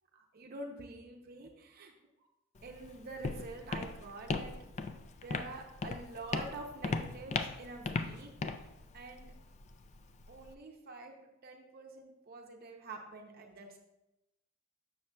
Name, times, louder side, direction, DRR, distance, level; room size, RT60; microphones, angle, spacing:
voice 1, 0.1-1.9 2.6-4.5 5.2-8.6 8.9-9.3 10.3-13.8, right 2 dB, 50° right, 2 dB, 0.6 m, -47 dB
Walk footsteps, 2.6-10.5, left 4 dB, 35° left, 0.3 m, -39 dB
7.2 x 6.3 x 2.2 m, 0.91 s
head